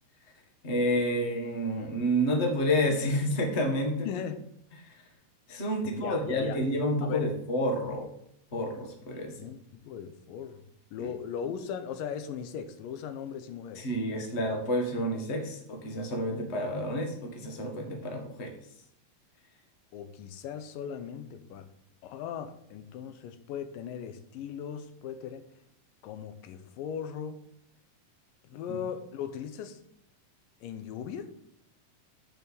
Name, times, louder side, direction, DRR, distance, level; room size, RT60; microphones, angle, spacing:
voice 1, 0.6-4.1 4.8-4.9 5.5-8.1 8.5-9.3 11.0-11.1 13.7-18.5, equal, 35° left, 2 dB, 1.1 m, -29 dB
voice 2, 4.1-4.5 5.8-6.6 7.0-7.3 9.4-10.6 10.9-13.9 19.9-21.7 22.0-25.5 26.0-27.4 28.5-29.8 30.6-31.3, left 8 dB, 90° left, 10 dB, 2.5 m, -38 dB
6.9 x 6.2 x 7.0 m, 0.75 s
omnidirectional pair, 3.8 m